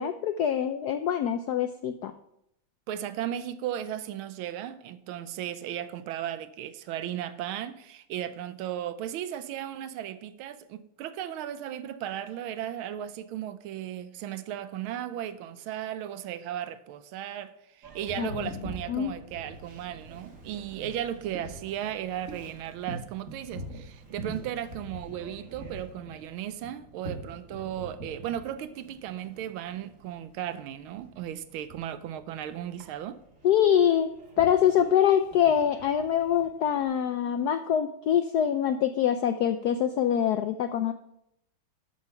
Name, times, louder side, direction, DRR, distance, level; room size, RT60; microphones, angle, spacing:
voice 1, 0.0-2.1 18.2-18.5 18.9-19.1 33.4-34.1 34.4-40.9, left 9 dB, 80° left, 0.9 m, -24 dB
voice 2, 2.9-33.2, right 11 dB, 90° right, 1.5 m, -36 dB
Boat Water vehicle, 17.8-36.8, right 2 dB, 40° right, 1.7 m, -45 dB
12.5 x 5.8 x 5.6 m
omnidirectional pair, 2.3 m